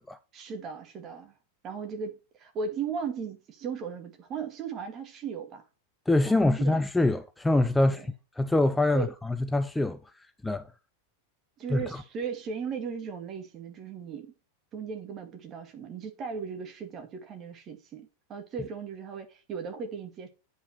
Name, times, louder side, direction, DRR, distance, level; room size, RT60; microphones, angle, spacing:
voice 1, 0.3-1.3 1.6-5.6 6.2-6.8 7.9-8.1 8.9-9.1 11.6-14.3 14.7-20.3, right 6 dB, 30° right, 2.1 m, -37 dB
voice 2, 6.1-8.0 8.4-10.7 11.7-11.8, left 2 dB, 5° left, 0.5 m, -25 dB
9.1 x 5.5 x 4.5 m
figure-of-eight pair, 90°, 0 cm